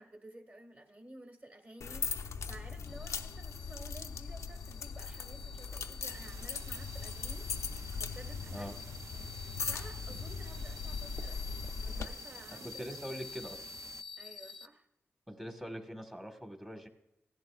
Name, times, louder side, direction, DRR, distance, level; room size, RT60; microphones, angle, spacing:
voice 1, 0.0-2.2 2.5-7.5 8.0-8.7 9.7-11.4 11.8-13.2 14.2-14.9, right 1 dB, 35° right, 5 dB, 1.8 m, -53 dB
sound 1, 1.8-12.1, left 5 dB, 80° left, 0.5 m, -40 dB
sound 2, 2.8-14.7, left 6 dB, 5° left, 0.7 m, -50 dB
sound 3, 6.0-14.0, right 6 dB, 80° right, 0.4 m, -52 dB
voice 2, 12.5-13.6 15.3-16.9, equal, 15° right, 3 dB, 1.5 m, -43 dB
16.0 x 11.0 x 2.4 m, 0.88 s
cardioid pair, 70°, 5 cm